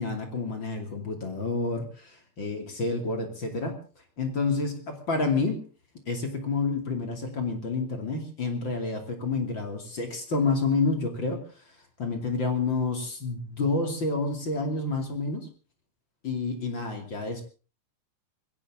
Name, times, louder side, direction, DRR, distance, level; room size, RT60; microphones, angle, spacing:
voice 1, 0.0-3.8 4.2-5.6 6.1-11.4 12.0-15.5 16.2-17.4, left 3 dB, 40° left, 4 dB, 3.2 m, -29 dB
21.5 x 17.5 x 3.7 m, 0.36 s
omnidirectional pair, 3.5 m